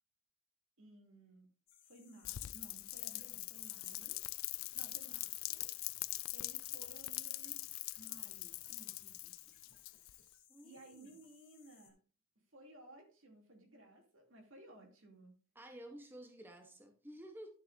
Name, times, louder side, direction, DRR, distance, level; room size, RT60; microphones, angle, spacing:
voice 1, 0.8-1.5 1.8-4.2 4.7-5.7 6.3-7.6 8.0-9.5 10.6-12.0 12.5-15.3 16.1-16.3, right 1 dB, 75° right, 2.6 m, -58 dB
sound 1, 1.7-11.9, left 9 dB, 65° left, 2.4 m, -64 dB
Rain, 2.2-10.3, left 19 dB, 85° left, 0.4 m, -43 dB
voice 2, 10.5-11.2 15.5-17.5, right 1 dB, 10° right, 1.0 m, -52 dB
11.5 x 7.4 x 2.6 m
head